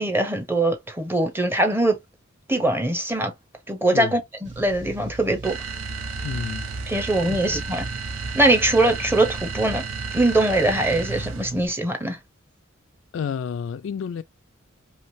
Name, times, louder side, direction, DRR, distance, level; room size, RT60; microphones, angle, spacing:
voice 1, 0.0-2.0 2.5-3.3 3.7-5.6 6.9-7.9 8.3-9.8 10.1-12.2, right 2 dB, 10° right, 0.7 m, -22 dB
sound 1, 4.4-11.7, right 3 dB, 60° right, 1.1 m, -39 dB
sound 2, 5.4-11.6, right 4 dB, 75° right, 0.7 m, -33 dB
voice 2, 6.2-6.7 7.3-7.4 13.1-14.2, left 7 dB, 65° left, 0.3 m, -29 dB
3.1 x 2.9 x 2.6 m
head